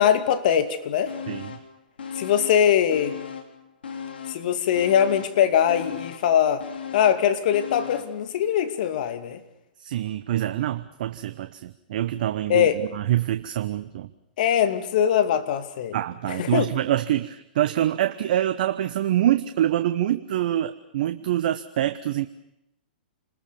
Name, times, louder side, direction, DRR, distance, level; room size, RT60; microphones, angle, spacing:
voice 1, 0.0-1.1 2.1-3.1 4.3-6.6 6.9-9.4 12.5-12.8 14.4-16.0 16.3-16.7, left 9 dB, 55° left, 2.6 m, -22 dB
sound 1, 1.1-1.7 2.0-3.6 3.8-8.2 8.6-8.7, left 7 dB, 75° left, 3.8 m, -37 dB
voice 2, 1.3-1.6 9.8-14.1 15.9-22.3, right 12 dB, 55° right, 1.1 m, -25 dB
28.5 x 21.0 x 7.1 m
hypercardioid pair, 125°, 5 cm